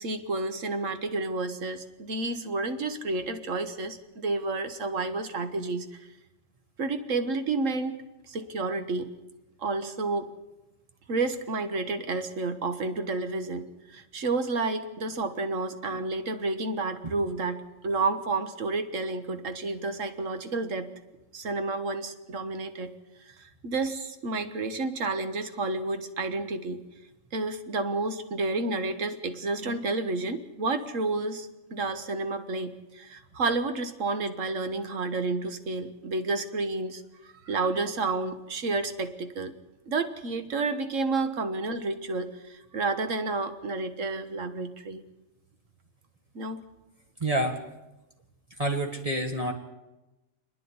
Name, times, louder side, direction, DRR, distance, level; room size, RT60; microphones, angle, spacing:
voice 1, 0.0-5.9 6.8-9.1 9.6-10.3 11.1-20.9 21.3-22.9 23.3-26.8 27.3-39.5 39.9-45.0 46.4-46.6, right 3 dB, 85° right, 9 dB, 1.7 m, -30 dB
voice 2, 47.2-47.6 48.6-49.5, right 1 dB, 30° right, 2 dB, 1.7 m, -27 dB
28.0 x 10.0 x 9.7 m, 1.0 s
omnidirectional pair, 1.3 m